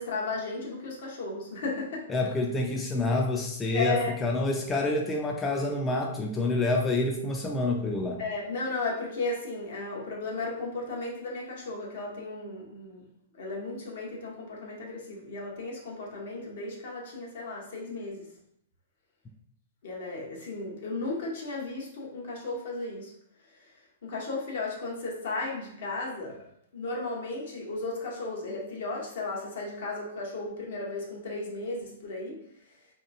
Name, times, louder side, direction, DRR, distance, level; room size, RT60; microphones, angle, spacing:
voice 1, 0.0-2.1 3.7-4.2 8.2-13.1 13.4-18.3 19.8-23.1 24.0-26.4 26.7-32.4, left 3 dB, 70° left, -2 dB, 0.9 m, -35 dB
voice 2, 2.1-8.2, left 2 dB, 15° left, 0 dB, 0.3 m, -28 dB
2.8 x 2.2 x 2.6 m, 0.74 s
hypercardioid pair, 130°, 0 cm